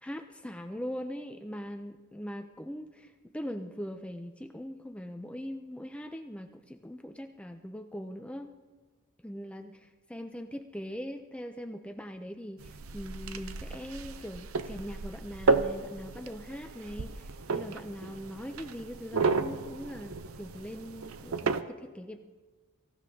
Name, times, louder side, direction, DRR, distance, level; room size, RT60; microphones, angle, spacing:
voice 1, 0.0-8.5 9.2-22.2, equal, 5° left, 5 dB, 0.5 m, -41 dB
sound 1, 12.6-21.6, right 4 dB, 80° right, 0.6 m, -33 dB
24.0 x 15.5 x 2.8 m, 1.3 s
head